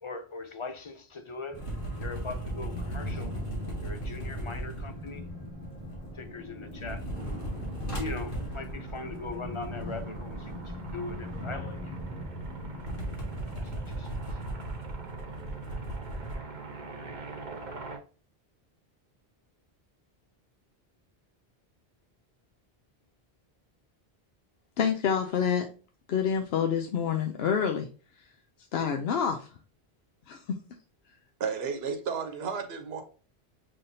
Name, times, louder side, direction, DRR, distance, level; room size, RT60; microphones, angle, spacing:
voice 1, 0.0-3.3 3.8-5.3 6.1-7.1 7.9-11.9 13.5-14.4, left 3 dB, 40° left, 0.4 m, -41 dB
sound 1, 1.5-6.3 6.6-16.3, right 1 dB, 55° left, 1.6 m, -37 dB
sound 2, 1.5-17.2, left 1 dB, 10° left, 2.3 m, -43 dB
sound 3, 7.1-18.0, right 4 dB, 50° right, 0.9 m, -45 dB
voice 2, 24.8-25.7 26.1-27.9 28.7-29.5 30.3-30.6, left 7 dB, 75° left, 0.8 m, -27 dB
voice 3, 31.4-33.0, right 6 dB, 75° right, 1.0 m, -32 dB
5.7 x 3.4 x 2.7 m
omnidirectional pair, 1.1 m